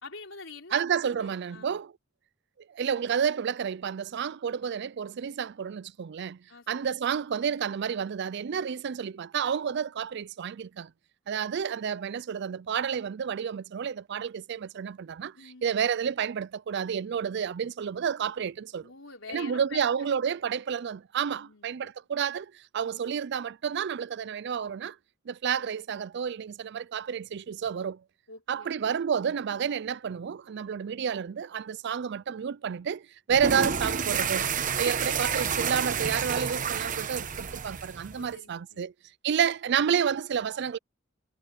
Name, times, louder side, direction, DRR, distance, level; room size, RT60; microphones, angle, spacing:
voice 1, 0.0-1.7 6.5-6.7 11.4-11.6 15.3-15.7 18.8-19.9 20.3-20.4 21.3-21.9 28.3-28.7 38.1-38.9, left 4 dB, 75° left, 4.5 m, -46 dB
voice 2, 0.7-1.9 2.7-6.4 6.7-10.9 11.3-18.9 19.3-25.0 25.3-28.0 28.5-38.9 39.2-40.8, right 7 dB, 60° right, 0.4 m, -30 dB
sound 1, 33.3-38.3, right 6 dB, 40° right, 1.0 m, -30 dB
head